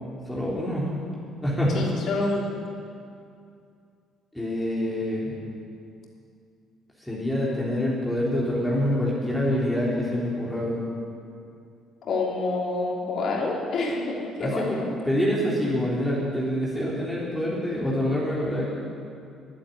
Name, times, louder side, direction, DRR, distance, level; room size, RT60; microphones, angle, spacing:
voice 1, 0.2-0.9 1.4-1.8 4.3-5.3 7.0-10.8 14.4-18.8, equal, 10° left, -7 dB, 3.4 m, -26 dB
voice 2, 1.7-2.5 12.0-14.9, left 2 dB, 60° left, -2 dB, 3.2 m, -27 dB
11.5 x 8.6 x 9.7 m, 2.4 s
supercardioid pair, 80°, 0 cm